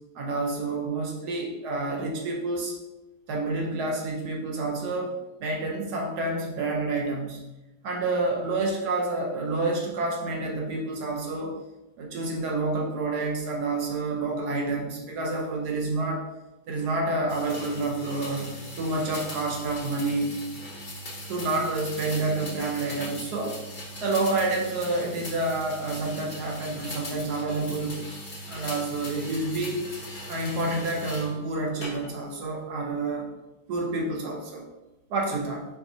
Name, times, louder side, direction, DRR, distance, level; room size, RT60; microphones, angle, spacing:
voice 1, 0.1-2.7 3.3-5.1 5.4-7.4 7.8-11.5 12.0-16.2 16.7-20.3 21.3-23.6 24.0-28.0 28.5-29.8 30.3-33.3 33.7-34.6 35.1-35.6, right 2 dB, 65° right, 0 dB, 1.1 m, -28 dB
sound 1, 17.3-31.3 31.8-32.4, equal, 60° left, 0.5 m, -39 dB
4.7 x 4.0 x 2.6 m, 1.0 s
omnidirectional pair, 2.3 m